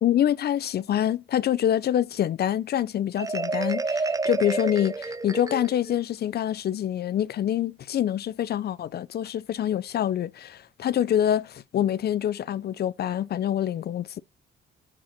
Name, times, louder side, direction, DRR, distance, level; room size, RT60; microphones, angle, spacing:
voice 1, 0.0-14.2, left 10 dB, 55° left, 0.5 m, -26 dB
Marimba xylophone, 3.2-5.9, right 3 dB, 15° right, 0.5 m, -29 dB
7.4 x 4.3 x 6.2 m
cardioid pair, 90°, 20 cm